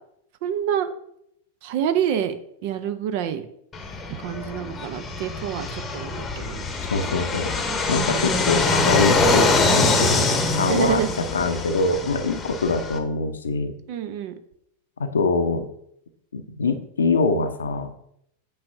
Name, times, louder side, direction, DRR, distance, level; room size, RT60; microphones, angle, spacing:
voice 1, 0.4-0.9 1.6-2.3 2.6-3.4 4.2-6.6 10.7-11.1 13.9-14.3, right 9 dB, 50° right, 10 dB, 0.6 m, -27 dB
Fixed-wing aircraft airplane, 3.7-13.0, left 3 dB, 20° left, 0.9 m, -24 dB
voice 2, 6.9-7.5 7.9-10.3 10.6-13.7 15.0-15.7 16.3-18.0, left 4 dB, 70° left, 9 dB, 0.6 m, -24 dB
8.7 x 5.5 x 2.7 m, 0.73 s
figure-of-eight pair, 90°, 0 cm